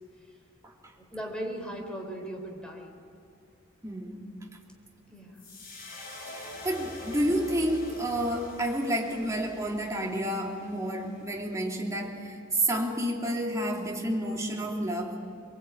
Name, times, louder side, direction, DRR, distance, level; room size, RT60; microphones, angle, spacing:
voice 1, 1.1-3.0 5.1-5.4, right 1 dB, 5° left, 1 dB, 3.8 m, -38 dB
voice 2, 3.8-4.4 6.4-15.2, right 1 dB, 15° right, -1 dB, 3.0 m, -30 dB
sound 1, 5.3-11.7, left 1 dB, 45° left, 7.7 m, -45 dB
23.5 x 23.0 x 8.7 m, 2.3 s
head